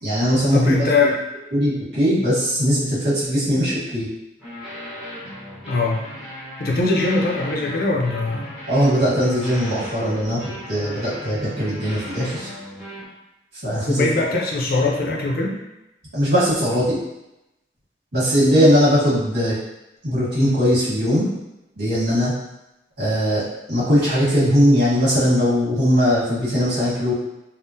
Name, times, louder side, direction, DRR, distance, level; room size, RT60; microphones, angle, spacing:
voice 1, 0.0-1.1 1.5-4.1 8.7-12.5 13.6-14.1 16.1-17.0 18.1-19.5 20.0-21.3 21.8-22.3 23.0-23.4 23.7-27.1, equal, 65° right, -9 dB, 1.4 m, -19 dB
voice 2, 0.5-1.2 5.7-6.0 6.6-8.5 13.9-15.6, left 3 dB, 55° left, -1 dB, 0.5 m, -21 dB
sound 1, 4.4-13.0, equal, 5° right, 0.9 m, -36 dB
3.6 x 2.0 x 2.7 m, 0.92 s
head